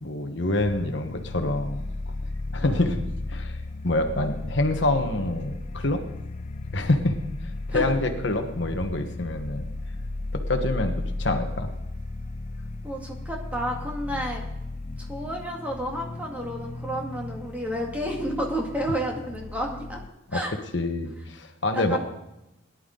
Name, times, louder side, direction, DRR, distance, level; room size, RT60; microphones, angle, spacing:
voice 1, 0.0-2.1 2.5-3.0 3.3-6.0 6.7-7.2 7.7-9.7 10.3-11.7 20.3-20.4 20.7-22.0, left 2 dB, 65° left, 5 dB, 1.3 m, -26 dB
sound 1, 0.6-20.1, left 2 dB, 35° left, 0.5 m, -35 dB
voice 2, 12.8-14.4 15.0-20.0 20.3-20.5 21.7-22.0, equal, 10° right, -1 dB, 2.1 m, -31 dB
18.5 x 11.0 x 3.9 m, 0.90 s
head